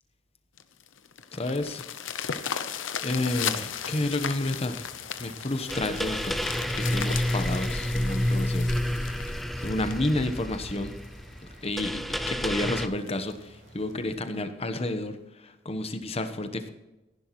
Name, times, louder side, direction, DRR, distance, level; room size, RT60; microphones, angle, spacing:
sound 1, 0.6-11.1 11.6-11.7 12.2-12.3 12.6-12.7 13.1-13.3 14.2-14.3, left 8 dB, 75° left, 0.8 m, -36 dB
voice 1, 1.3-1.8 3.0-4.9 5.2-6.3 6.7-8.7 9.6-10.9 11.6-12.0 12.3-16.7, left 2 dB, 30° left, 8 dB, 1.1 m, -30 dB
sound 2, 3.1-14.0, right 1 dB, 65° right, 3.8 m, -53 dB
sound 3, 5.7-12.9, equal, ahead, 0.5 m, -29 dB
15.0 x 11.0 x 3.1 m, 1.0 s
head